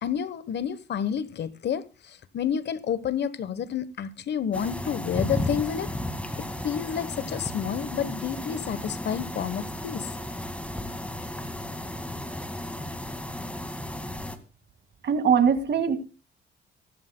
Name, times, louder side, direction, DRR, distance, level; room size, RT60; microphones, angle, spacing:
voice 1, 0.0-5.9 6.4-10.1, left 8 dB, 60° left, 1.1 m, -30 dB
sound 1, 4.5-14.4, left 1 dB, 5° left, 1.9 m, -34 dB
voice 2, 15.0-16.0, right 7 dB, 60° right, 2.0 m, -21 dB
24.0 x 11.5 x 2.2 m
cardioid pair, 90°, 20 cm